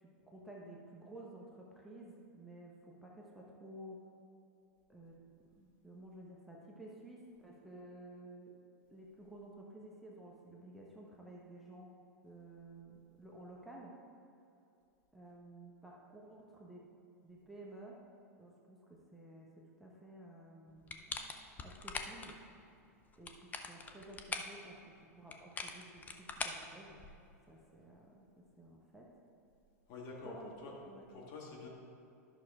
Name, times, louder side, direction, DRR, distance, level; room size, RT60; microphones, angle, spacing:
voice 1, 0.0-4.0 4.9-5.2 5.6-8.5 8.9-11.9 12.2-13.9 15.1-16.9 17.2-18.0 18.4-21.0 21.6-22.4 23.2-27.0 27.5-29.1 30.2-30.5 30.8-31.1, right 1 dB, ahead, -4 dB, 1.1 m, -53 dB
sound 1, 20.9-22.3 23.1-24.6 25.3-27.3, left 4 dB, 20° left, 0.6 m, -43 dB
voice 2, 29.9-30.7 31.1-31.7, left 3 dB, 45° left, -2 dB, 1.9 m, -47 dB
11.0 x 6.1 x 3.7 m, 2.6 s
hypercardioid pair, 100°, 9 cm